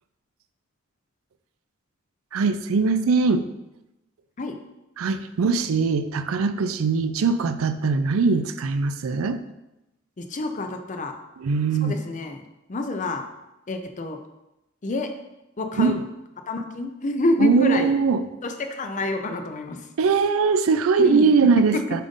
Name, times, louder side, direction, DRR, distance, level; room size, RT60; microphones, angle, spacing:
voice 1, 2.3-3.5 5.0-9.4 11.4-11.9 15.8-16.0 17.4-18.2 20.0-22.0, right 4 dB, 85° right, 10 dB, 0.4 m, -21 dB
voice 2, 10.2-11.1 11.8-12.4 12.7-13.2 13.7-14.2 14.8-15.1 15.6-15.9 16.5-17.9 18.4-19.9 21.0-21.3 21.6-21.8, left 2 dB, 35° left, 6 dB, 0.6 m, -27 dB
7.4 x 2.6 x 5.2 m, 0.94 s
head